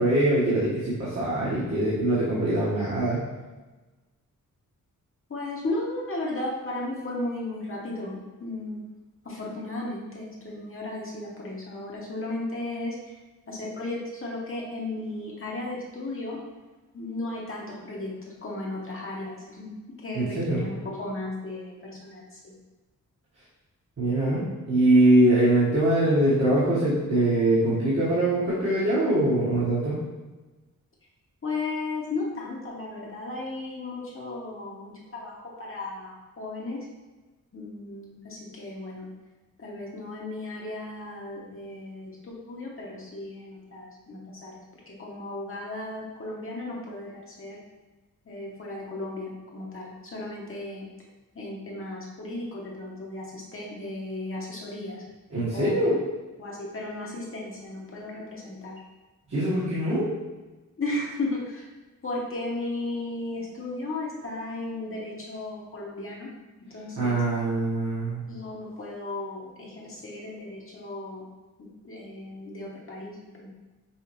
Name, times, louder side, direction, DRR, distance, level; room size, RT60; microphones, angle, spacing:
voice 1, 0.0-3.2 20.1-20.6 24.0-30.0 55.3-55.9 59.3-60.1 67.0-68.2, right 1 dB, 50° right, -10 dB, 1.3 m, -23 dB
voice 2, 5.3-8.8 9.2-13.2 13.5-16.4 16.9-22.5 31.4-36.9 37.5-39.1 39.6-44.5 44.9-47.6 48.3-50.9 51.3-55.0 55.5-55.9 56.4-58.7 60.8-61.7 62.0-66.3 66.7-67.4 68.3-71.2 71.8-73.1 73.4-73.5, left 2 dB, 40° left, -4 dB, 0.9 m, -35 dB
5.6 x 2.4 x 3.0 m, 1.2 s
wide cardioid pair, 85°, 32 cm